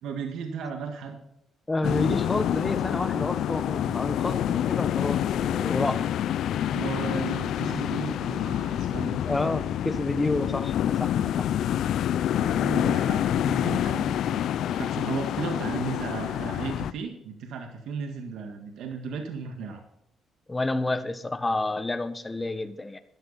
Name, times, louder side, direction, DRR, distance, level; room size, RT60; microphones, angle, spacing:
voice 1, 0.0-1.2 6.7-9.2 12.3-19.8, right 5 dB, 80° right, 4 dB, 1.7 m, -35 dB
voice 2, 1.7-6.1 9.2-11.5 20.5-23.0, left 2 dB, 20° left, 10 dB, 1.3 m, -29 dB
sound 1, 1.8-16.9, left 10 dB, 75° left, 0.5 m, -27 dB
12.5 x 11.0 x 4.2 m, 0.79 s
cardioid pair, 90°, 0 cm